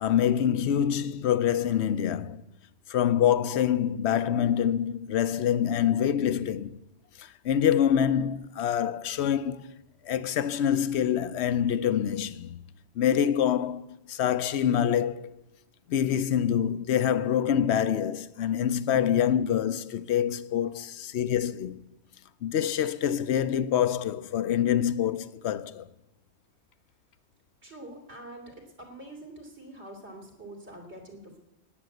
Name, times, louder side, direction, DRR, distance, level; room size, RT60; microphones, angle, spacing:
voice 1, 0.0-2.4 2.9-6.8 7.2-9.7 10.0-12.6 13.0-13.8 14.1-15.3 15.9-21.8 22.4-25.9, left 9 dB, 75° left, 1.0 m, -26 dB
voice 2, 27.6-31.4, right 1 dB, 75° right, 3.3 m, -45 dB
18.5 x 8.1 x 7.8 m
omnidirectional pair, 1.1 m